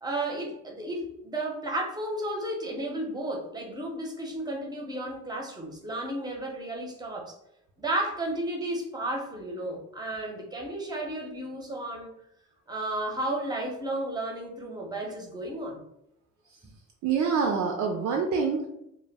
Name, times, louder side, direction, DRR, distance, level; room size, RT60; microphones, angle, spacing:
voice 1, 0.0-7.3 7.8-12.1 12.7-15.8, right 1 dB, 15° right, 0 dB, 0.7 m, -33 dB
voice 2, 17.0-18.7, right 5 dB, 70° right, 2 dB, 0.4 m, -26 dB
2.1 x 2.1 x 3.3 m, 0.80 s
cardioid pair, 90°, 30 cm